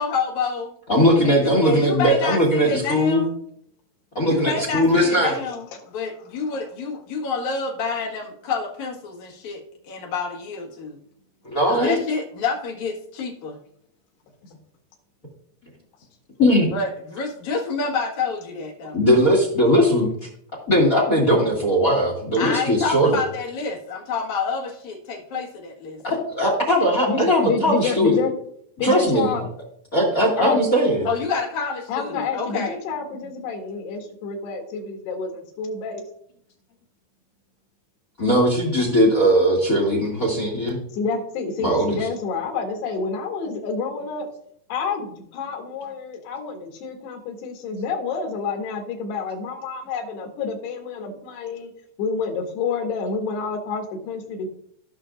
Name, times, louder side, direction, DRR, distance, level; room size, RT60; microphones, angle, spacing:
voice 1, 0.0-0.7 1.2-3.3 4.3-9.6 9.9-11.0 11.7-13.6 16.7-19.0 22.4-26.0 31.1-32.8, left 4 dB, 55° left, 0 dB, 2.5 m, -28 dB
voice 2, 0.9-3.3 4.1-5.3 11.4-12.0 16.4-16.7 18.9-20.1 20.7-23.2 26.0-28.2 28.8-29.3 29.9-31.1 38.2-40.8 41.6-42.0, equal, 40° left, 0 dB, 1.2 m, -19 dB
voice 3, 27.1-28.3 28.8-29.5 30.4-30.6 31.9-36.0 40.9-44.3 44.7-45.1 45.3-51.7 52.0-54.5, left 4 dB, 85° left, 1 dB, 3.6 m, -28 dB
16.0 x 5.9 x 2.5 m, 0.67 s
omnidirectional pair, 4.7 m